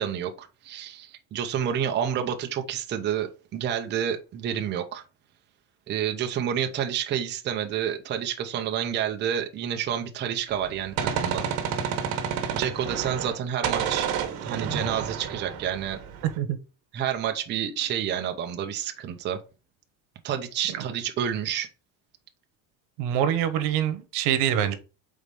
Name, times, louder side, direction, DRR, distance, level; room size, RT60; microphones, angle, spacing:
voice 1, 0.0-5.0 5.9-11.5 12.5-14.1 14.4-16.0 16.9-19.4 20.2-21.7, right 9 dB, 25° right, 0.6 m, -29 dB
Gunshot gunfire, 10.5-13.4 13.6-16.4, right 7 dB, 60° right, 1.3 m, -30 dB
voice 2, 16.2-16.6 20.7-20.8 23.0-24.8, right 10 dB, 85° right, 1.1 m, -25 dB
4.9 x 4.2 x 5.2 m
cardioid pair, 170°, 41 cm